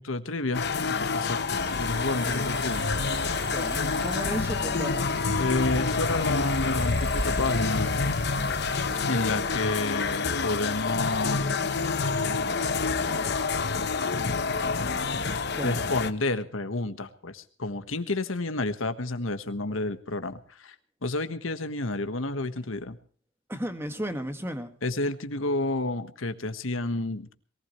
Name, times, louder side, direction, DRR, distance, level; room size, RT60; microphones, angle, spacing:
voice 1, 0.0-2.9 5.3-7.9 9.1-11.5 15.6-20.7 21.0-23.0 24.8-27.3, left 2 dB, 75° left, 9 dB, 1.5 m, -30 dB
sound 1, 0.5-16.1, left 4 dB, 55° left, 1.0 m, -28 dB
sound 2, 1.5-9.1, right 3 dB, 55° right, 0.9 m, -40 dB
voice 2, 3.5-5.1 15.5-15.8 23.5-24.7, equal, 10° right, 7 dB, 1.8 m, -34 dB
22.5 x 18.5 x 3.2 m, 0.42 s
head